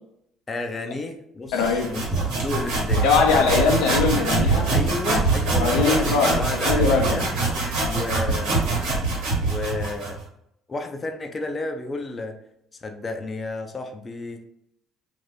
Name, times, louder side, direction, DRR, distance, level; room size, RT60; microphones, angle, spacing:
voice 1, 0.5-3.5 4.7-7.3 7.8-8.7 9.4-10.2 10.7-12.4 12.8-14.4, left 2 dB, 30° left, 4 dB, 0.5 m, -31 dB
voice 2, 1.5-1.9 3.0-4.7 5.6-6.4 6.7-7.1, left 5 dB, 85° left, 2 dB, 0.5 m, -21 dB
sound 1, 1.6-10.2, right 3 dB, 85° right, 1.2 m, -24 dB
2.6 x 2.5 x 3.3 m, 0.76 s
supercardioid pair, 80°, 0 cm